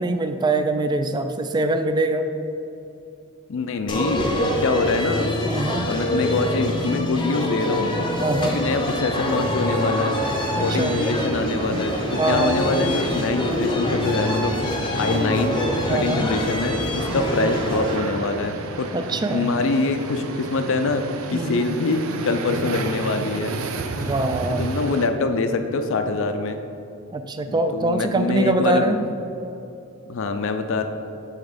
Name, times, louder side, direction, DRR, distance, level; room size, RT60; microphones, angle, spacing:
voice 1, 0.0-2.3 5.5-5.9 8.2-8.6 10.6-11.0 12.2-12.6 15.9-16.3 17.1-17.3 18.9-19.5 21.3-21.6 24.0-24.6 27.1-29.0, right 2 dB, 20° right, 8 dB, 0.3 m, -23 dB
voice 2, 3.5-5.3 5.9-8.0 8.5-10.2 10.6-15.6 15.9-21.0 21.3-23.5 24.6-26.6 27.4-29.1 30.1-30.8, left 3 dB, 65° left, 8 dB, 0.5 m, -24 dB
sound 1, 3.9-18.0, left 1 dB, 20° left, 0.6 m, -25 dB
sound 2, 9.7-25.1, right 3 dB, 75° right, 0.5 m, -33 dB
7.3 x 3.5 x 5.0 m, 2.7 s
head